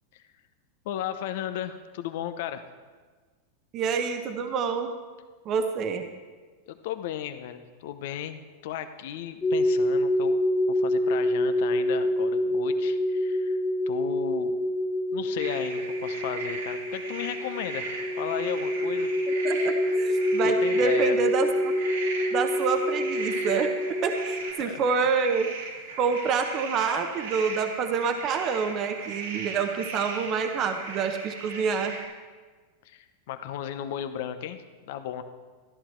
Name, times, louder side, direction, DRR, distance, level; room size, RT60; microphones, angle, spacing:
voice 1, 0.8-2.6 6.7-8.4 8.6-10.4 10.7-13.6 13.9-14.5 15.1-17.9 18.2-19.1 20.4-21.2 24.6-25.1 32.8-34.6 34.8-35.2, left 10 dB, 65° left, 10 dB, 0.8 m, -35 dB
voice 2, 3.7-4.9 5.5-6.0 19.4-21.7 22.3-23.7 24.0-25.5 26.0-31.9, right 5 dB, 40° right, 6 dB, 0.9 m, -27 dB
sound 1, 9.4-24.5, left 1 dB, 20° left, 2.0 m, -26 dB
sound 2, 15.4-32.0, right 4 dB, 80° right, 2.6 m, -38 dB
13.0 x 11.0 x 4.5 m, 1.4 s
hypercardioid pair, 110°, 0 cm